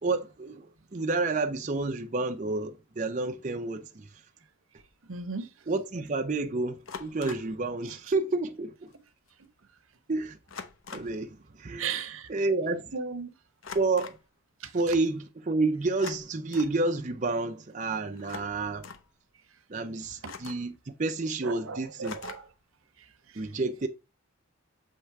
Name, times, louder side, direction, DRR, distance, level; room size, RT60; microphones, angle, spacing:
voice 1, 0.0-4.1 5.7-8.9 10.1-10.4 10.9-12.0 12.3-12.9 13.7-14.2 14.7-18.9 19.7-22.2 23.4-23.9, right 3 dB, 35° right, 0.6 m, -30 dB
sound 1, 4.8-5.0 6.9-7.6 8.9-9.0 9.3-9.5 10.5-11.2 13.6-14.3 15.9-16.8 18.2-19.1 20.2-20.8 22.0-22.6, left 5 dB, 75° left, 0.9 m, -43 dB
voice 2, 5.1-5.5 11.8-12.3 12.9-13.3 21.4-22.4, right 5 dB, 75° right, 0.9 m, -35 dB
7.7 x 3.3 x 4.6 m
head